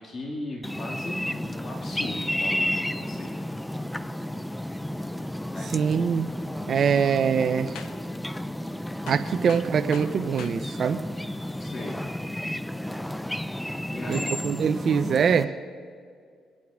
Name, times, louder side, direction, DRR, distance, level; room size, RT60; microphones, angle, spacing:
voice 1, 0.0-3.3 5.5-5.8 9.3-9.4 11.6-12.0 13.9-14.4, left 1 dB, 40° left, 0 dB, 2.1 m, -37 dB
sound 1, 0.6-15.4, left 1 dB, 5° left, 0.5 m, -32 dB
voice 2, 5.7-6.3 6.7-7.7 9.1-11.0 14.1-15.5, right 7 dB, 55° right, 8 dB, 0.6 m, -23 dB
sound 2, 7.7-8.1 8.5-8.6 9.1-10.6 11.2-11.3 12.6-12.8, left 7 dB, 85° left, 1.0 m, -43 dB
24.0 x 8.5 x 4.9 m, 2.1 s
cardioid pair, 90°, 0 cm